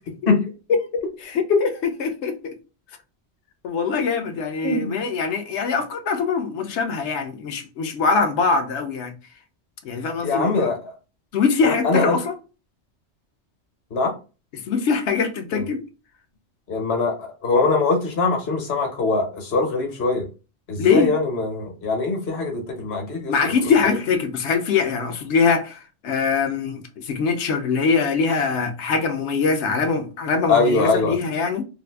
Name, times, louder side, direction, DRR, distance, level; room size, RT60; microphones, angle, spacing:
voice 1, 1.3-1.7 2.0-2.4 3.6-9.1 9.8-10.7 11.3-12.3 14.7-15.8 20.8-21.1 23.3-31.6, left 5 dB, 80° left, 0.9 m, -22 dB
voice 2, 4.6-5.0 10.2-10.9 11.6-12.2 13.9-14.1 15.5-15.7 16.7-20.3 20.7-23.9 30.5-31.2, left 3 dB, 55° left, 1.1 m, -22 dB
2.6 x 2.5 x 3.3 m
omnidirectional pair, 1.2 m